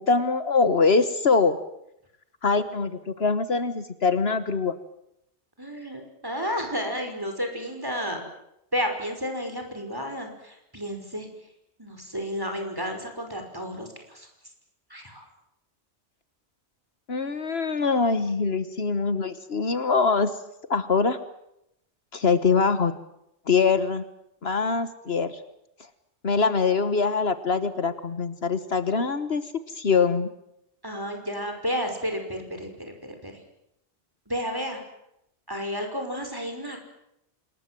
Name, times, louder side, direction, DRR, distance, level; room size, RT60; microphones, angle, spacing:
voice 1, 0.0-1.6 2.4-4.7 17.1-20.3 20.7-21.2 22.1-22.9 23.5-24.0 24.4-25.4 26.2-29.4 29.7-30.3, left 4 dB, 65° left, 12 dB, 1.6 m, -23 dB
voice 2, 5.6-8.2 8.7-11.3 11.8-14.3 14.9-15.3 30.8-32.9 33.2-33.3 34.3-34.8 35.5-36.8, equal, 20° right, 4 dB, 5.5 m, -31 dB
27.0 x 21.0 x 7.7 m, 0.80 s
omnidirectional pair, 1.2 m